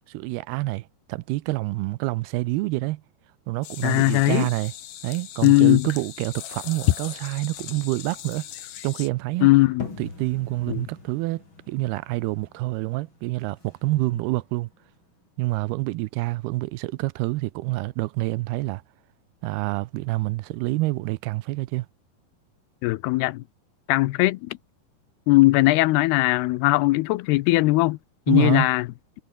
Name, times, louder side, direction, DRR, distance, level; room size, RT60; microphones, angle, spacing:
voice 1, 0.1-3.0 3.5-4.7 5.0-8.5 8.8-9.5 10.0-14.7 15.4-18.8 19.4-21.9 28.3-28.7, right 20 dB, 90° right, 2.7 m, -27 dB
sound 1, 3.6-9.1, left 12 dB, 60° left, 2.1 m, -40 dB
voice 2, 3.8-4.5 5.4-5.9 9.4-9.9 10.7-10.9 22.8-23.4 23.9-24.6 25.3-28.0 28.3-28.9, left 20 dB, 90° left, 2.7 m, -19 dB
sound 2, 9.8-15.3, left 3 dB, 30° left, 6.4 m, -44 dB
omnidirectional pair, 4.5 m